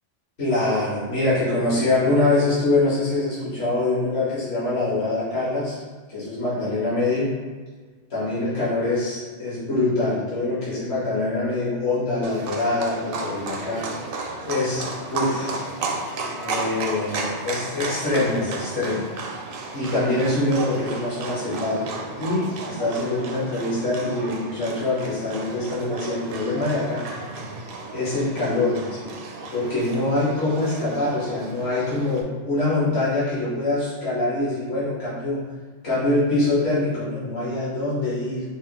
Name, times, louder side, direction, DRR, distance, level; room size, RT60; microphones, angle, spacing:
voice 1, 0.4-5.8 6.1-7.3 8.1-13.9 14.4-15.6 16.4-19.0 19.7-27.0 27.9-29.1 29.5-35.4 35.8-38.4, left 2 dB, 60° left, -10 dB, 1.7 m, -24 dB
Livestock farm animals working animals, 12.2-32.2, right 3 dB, 60° right, 0.6 m, -33 dB
5.3 x 2.2 x 2.9 m, 1.4 s
omnidirectional pair, 1.2 m